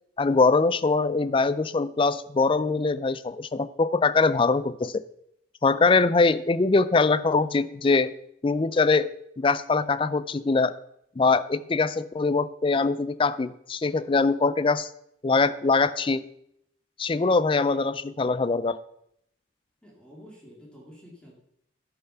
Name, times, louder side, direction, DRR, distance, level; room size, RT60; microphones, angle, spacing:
voice 1, 0.2-5.0 5.6-8.1 8.4-9.1 9.4-10.7 11.2-14.9 15.2-16.2 17.0-18.8, left 3 dB, 25° left, 15 dB, 0.4 m, -23 dB
voice 2, 19.8-21.3, equal, 5° left, -3 dB, 2.2 m, -49 dB
11.5 x 5.6 x 5.8 m, 0.75 s
head